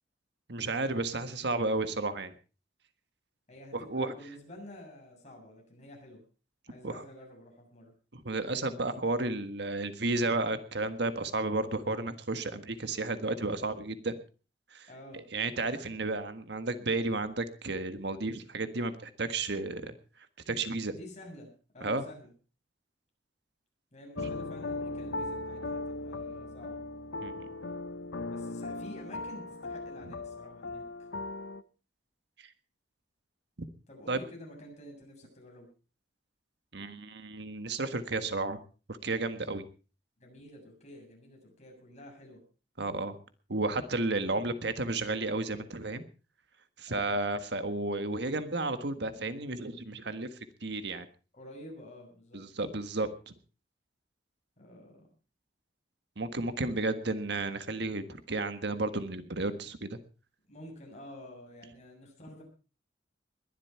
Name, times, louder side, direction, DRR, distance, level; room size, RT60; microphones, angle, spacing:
voice 1, 0.5-2.3 3.7-4.1 6.8-7.0 8.1-14.1 14.7-14.9 15.3-19.9 20.5-21.0 21.8-22.0 24.2-24.3 27.2-27.5 32.4-32.5 34.1-34.2 36.7-38.6 38.9-39.6 42.8-43.2 43.5-46.0 46.8-50.3 50.6-51.0 52.3-53.3 56.2-60.0, right 2 dB, 65° right, 10 dB, 1.6 m, -32 dB
voice 2, 3.5-6.2 6.7-7.9 14.9-15.3 20.9-22.3 23.9-26.8 28.3-31.1 33.9-35.7 40.2-42.4 46.9-47.1 51.3-52.4 54.6-55.1 60.5-62.4, left 1 dB, 40° left, 1 dB, 7.3 m, -49 dB
sound 1, 24.2-31.6, left 2 dB, 90° left, 0.8 m, -38 dB
21.0 x 12.0 x 4.5 m, 0.36 s
head